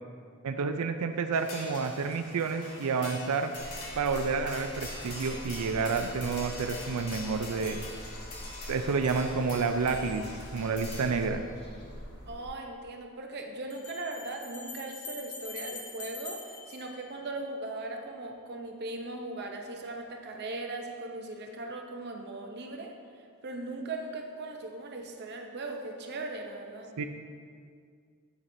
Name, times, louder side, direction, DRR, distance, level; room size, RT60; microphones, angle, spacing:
voice 1, 0.4-3.5 4.0-7.8 8.7-10.2 10.5-11.4 27.0-27.1, right 4 dB, 85° right, 8 dB, 0.4 m, -29 dB
sound 1, 1.3-11.3, left 2 dB, 75° left, 1.5 m, -44 dB
sound 2, 3.5-12.5, equal, 45° left, 1.3 m, -44 dB
voice 2, 12.3-22.9 23.4-26.9, right 2 dB, 50° right, 2 dB, 0.7 m, -39 dB
sound 3, 13.7-17.7, left 4 dB, 30° left, 0.9 m, -44 dB
8.1 x 7.1 x 2.7 m, 2.2 s
head